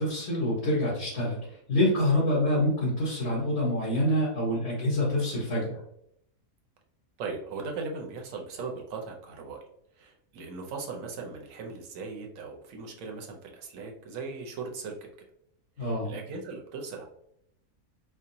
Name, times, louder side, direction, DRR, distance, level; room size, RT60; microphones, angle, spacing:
voice 1, 0.0-5.8 15.8-16.1, left 1 dB, 50° left, -9 dB, 1.7 m, -26 dB
voice 2, 7.2-9.6 9.9-14.9 15.8-17.0, right 4 dB, 70° right, 2 dB, 1.1 m, -38 dB
4.4 x 2.2 x 2.7 m, 0.72 s
omnidirectional pair, 1.5 m